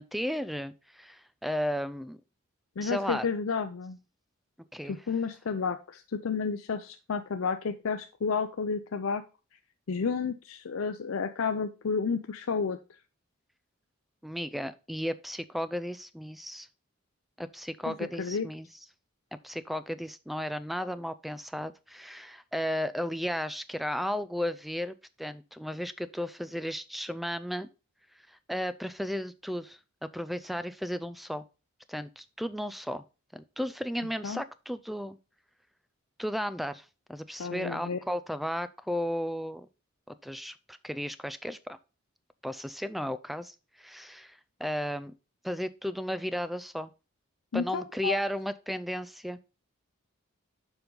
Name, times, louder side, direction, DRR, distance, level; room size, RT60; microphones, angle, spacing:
voice 1, 0.0-2.2 2.8-3.3 4.7-5.0 14.2-16.7 17.4-18.7 19.4-27.7 28.3-31.4 31.9-33.0 33.3-35.2 36.2-39.7 40.1-41.8 42.4-45.1 45.4-46.9 47.5-49.4, equal, ahead, 13 dB, 0.3 m, -34 dB
voice 2, 2.8-4.0 4.8-9.2 9.9-12.8 17.9-18.5 34.2-34.4 37.4-38.0 47.5-48.2, left 5 dB, 75° left, 8 dB, 0.5 m, -31 dB
7.0 x 5.3 x 3.8 m, 0.32 s
head